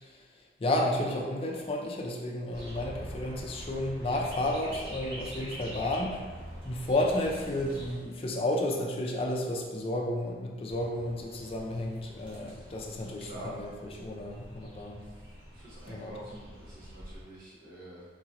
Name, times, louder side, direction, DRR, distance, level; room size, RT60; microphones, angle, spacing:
voice 1, 0.6-6.2 6.6-13.7 14.0-15.0 15.9-16.2, left 1 dB, 30° left, 0 dB, 0.4 m, -32 dB
sound 1, 2.5-7.9 10.7-17.2, equal, 85° right, 1.4 m, -45 dB
voice 2, 13.2-13.5 15.5-18.0, right 1 dB, 55° right, -7 dB, 1.1 m, -47 dB
3.9 x 2.9 x 2.5 m, 1.4 s
head